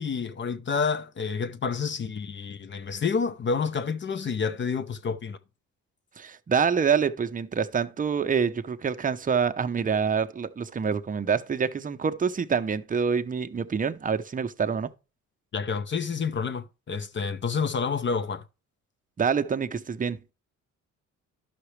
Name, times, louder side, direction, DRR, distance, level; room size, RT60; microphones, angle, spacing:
voice 1, 0.0-5.4 15.5-18.4, left 5 dB, 40° left, 0.7 m, -29 dB
voice 2, 6.2-14.9 19.2-20.2, right 6 dB, 25° right, 0.7 m, -26 dB
11.5 x 5.9 x 3.2 m
cardioid pair, 90°, 30 cm